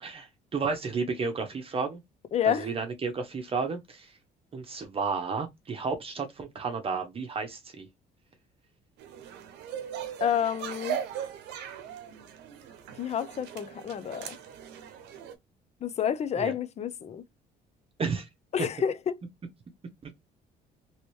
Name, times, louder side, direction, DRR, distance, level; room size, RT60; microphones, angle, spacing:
voice 1, 0.0-2.0 2.5-4.1 4.5-7.9 16.4-16.5 18.0-18.3, right 4 dB, 35° right, 0.8 m, -32 dB
voice 2, 2.3-2.7 10.2-11.0 13.0-14.4 15.8-17.2 18.5-19.2, left 8 dB, 40° left, 0.5 m, -29 dB
sound 1, 9.0-15.3, right 9 dB, 85° right, 0.8 m, -39 dB
3.0 x 2.9 x 3.1 m
cardioid pair, 110°, 17 cm